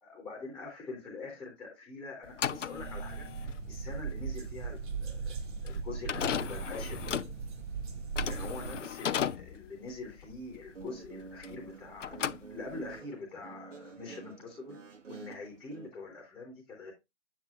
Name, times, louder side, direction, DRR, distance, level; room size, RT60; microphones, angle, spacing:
voice 1, 0.0-7.2 8.2-14.8 15.1-16.9, left 3 dB, ahead, 0 dB, 0.6 m, -44 dB
sound 1, 2.3-11.7 12.0-13.0, left 9 dB, 75° left, 0.5 m, -36 dB
sound 2, 2.7-8.8, right 5 dB, 40° right, 1.3 m, -38 dB
Guitar, 10.6-15.9, right 5 dB, 80° right, 1.5 m, -49 dB
7.3 x 7.1 x 2.4 m, 0.21 s
figure-of-eight pair, 135°, 37 cm